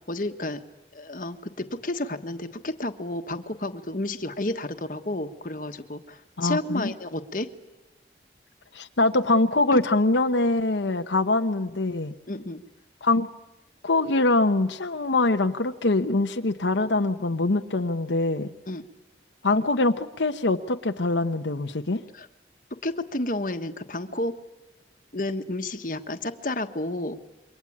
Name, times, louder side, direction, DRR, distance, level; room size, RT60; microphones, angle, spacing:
voice 1, 0.1-0.6 0.9-7.5 12.3-12.6 18.7-18.8 22.1-22.3 22.8-24.3 25.1-27.2, left 1 dB, 45° left, 8 dB, 1.4 m, -31 dB
voice 2, 6.4-6.9 8.7-12.1 13.0-13.3 13.8-18.5 19.4-22.0, left 2 dB, 85° left, 6 dB, 1.0 m, -23 dB
28.0 x 23.5 x 8.7 m, 1.0 s
head